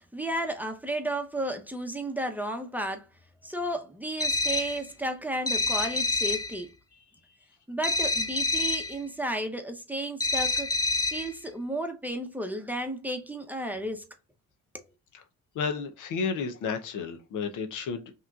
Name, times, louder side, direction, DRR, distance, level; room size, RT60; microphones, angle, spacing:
voice 1, 0.0-3.1 3.4-6.7 7.7-10.7 11.1-14.1 14.7-14.9, right 1 dB, 5° right, 0.8 m, -33 dB
sound 1, 4.2-4.8 5.5-6.5 7.8-8.9 10.2-11.3, left 2 dB, 10° left, 0.4 m, -27 dB
voice 2, 15.5-18.1, left 5 dB, 70° left, 0.8 m, -32 dB
5.6 x 3.0 x 2.4 m
supercardioid pair, 65°, 32 cm